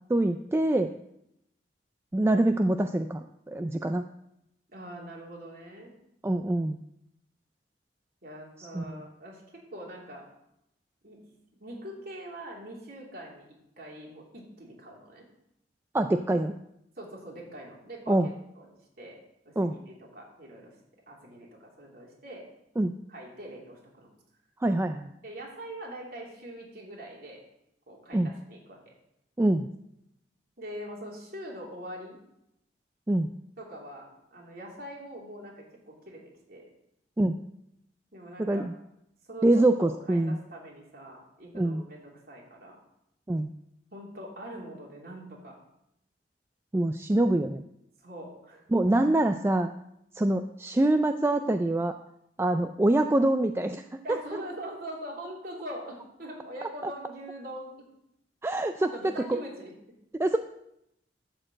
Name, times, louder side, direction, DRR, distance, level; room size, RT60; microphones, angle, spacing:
voice 1, 0.1-0.9 2.1-4.1 6.2-6.8 8.6-9.0 15.9-16.5 18.1-18.3 19.6-19.7 22.8-22.9 24.6-25.1 28.1-28.3 29.4-29.7 33.1-33.3 37.2-37.3 38.4-38.7 39.4-40.4 41.5-41.8 43.3-43.5 46.7-47.6 48.7-49.7 50.1-51.9 52.4-53.8 54.1-54.2 58.4-58.9 59.3-59.4 60.2-60.4, right 1 dB, 15° right, 7 dB, 0.3 m, -25 dB
voice 2, 4.7-5.9 8.2-10.3 11.0-11.2 11.5-15.3 17.0-18.7 19.0-19.2 19.4-20.7 21.1-22.5 23.1-24.1 25.2-27.4 27.9-28.9 30.6-32.2 33.6-36.2 36.5-36.7 38.1-38.7 39.3-42.8 43.9-45.6 48.0-48.6 54.0-57.8 58.8-59.7, right 1 dB, 55° right, -3 dB, 3.2 m, -43 dB
12.5 x 4.5 x 7.5 m, 0.82 s
head